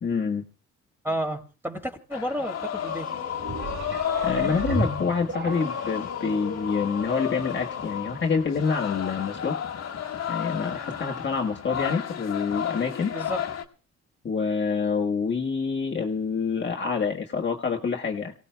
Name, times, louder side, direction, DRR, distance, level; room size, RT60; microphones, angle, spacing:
voice 1, 0.0-0.4 4.2-9.6 10.3-13.1 14.2-18.3, left 5 dB, 40° left, 0 dB, 1.5 m, -27 dB
voice 2, 1.0-3.1 13.1-13.4, equal, 5° right, 3 dB, 2.8 m, -31 dB
sound 1, 2.1-13.6, left 9 dB, 55° left, 1.6 m, -32 dB
sound 2, 3.1-6.6, right 4 dB, 85° right, 5.6 m, -42 dB
sound 3, 3.4-6.0 6.7-6.8, right 3 dB, 40° right, 1.8 m, -33 dB
27.5 x 17.5 x 2.3 m, 0.36 s
cardioid pair, 90°, 30 cm